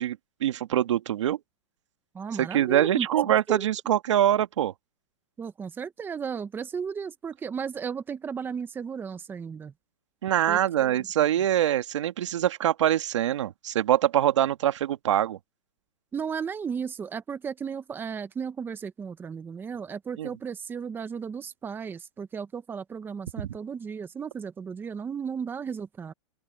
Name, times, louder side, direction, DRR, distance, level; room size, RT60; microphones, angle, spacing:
voice 1, 0.0-1.4 2.4-4.7 10.2-15.4 20.2-20.3 23.4-23.6, right 11 dB, 80° right, 1.7 m, -24 dB
voice 2, 2.1-3.7 5.4-9.7 10.5-11.0 16.1-26.1, right 6 dB, 15° right, 1.1 m, -35 dB
open air
hypercardioid pair, 145°, 15 cm